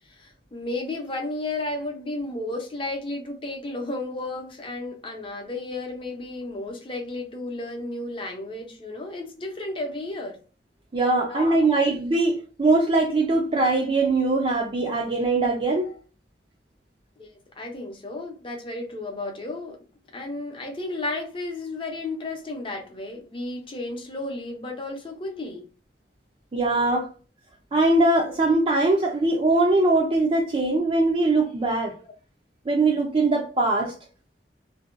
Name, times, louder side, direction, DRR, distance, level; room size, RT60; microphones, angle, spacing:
voice 1, 0.1-10.4 11.3-11.8 17.2-17.3 17.6-19.8 20.1-25.6 32.0-32.1, left 2 dB, 30° left, 0.6 m, -33 dB
voice 2, 10.9-15.9 26.5-27.1 27.7-31.9 32.7-33.9, right 2 dB, 30° right, 0.4 m, -21 dB
2.6 x 2.2 x 2.4 m
head